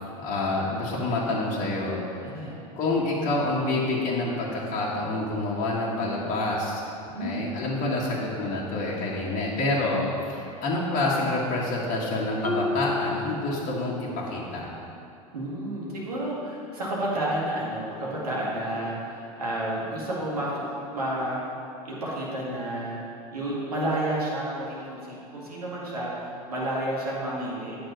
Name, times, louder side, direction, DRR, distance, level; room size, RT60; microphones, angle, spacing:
voice 1, 0.2-2.4 2.7-14.7, left 2 dB, 40° left, -5 dB, 1.6 m, -27 dB
voice 2, 2.2-2.6 7.1-7.4 15.3-21.4 21.8-23.0 23.3-27.8, right 1 dB, 80° right, -5 dB, 2.1 m, -31 dB
Marimba xylophone, 12.4-14.2, left 3 dB, 5° left, 0.5 m, -32 dB
9.0 x 5.7 x 5.1 m, 2.7 s
figure-of-eight pair, 85°, 20 cm